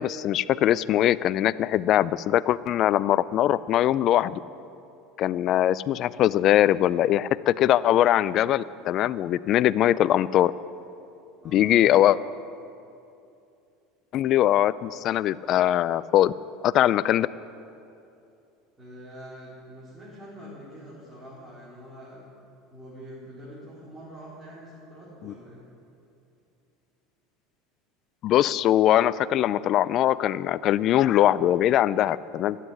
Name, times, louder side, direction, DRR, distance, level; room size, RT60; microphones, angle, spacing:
voice 1, 0.0-4.4 5.2-10.5 11.5-12.2 14.1-16.3 16.6-17.3 25.2-25.3 28.2-32.6, left 12 dB, 50° left, 17 dB, 0.4 m, -21 dB
voice 2, 11.4-11.8 18.8-22.3 22.7-25.6, equal, 20° right, -9 dB, 4.3 m, -45 dB
13.0 x 8.4 x 10.0 m, 2.7 s
supercardioid pair, 115°, 0 cm